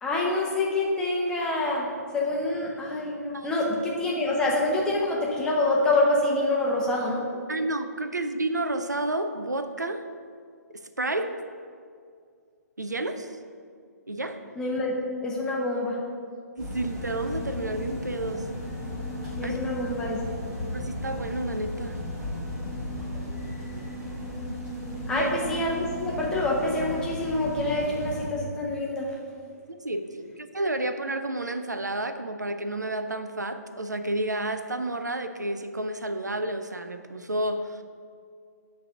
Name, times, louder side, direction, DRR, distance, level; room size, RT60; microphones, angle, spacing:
voice 1, 0.0-7.4 14.6-14.9 15.2-16.0 19.4-20.2 23.0-23.4 25.1-29.1, left 2 dB, 10° left, -3 dB, 0.9 m, -26 dB
voice 2, 7.5-10.1 10.7-11.4 12.8-13.3 14.1-14.4 16.6-18.5 19.4-19.6 20.7-22.0 25.1-25.3 29.7-37.8, right 1 dB, 80° right, 9 dB, 0.6 m, -30 dB
sound 1, 16.6-28.3, left 1 dB, 20° right, 1.9 m, -35 dB
8.1 x 3.3 x 6.2 m, 2.2 s
figure-of-eight pair, 130°, 9 cm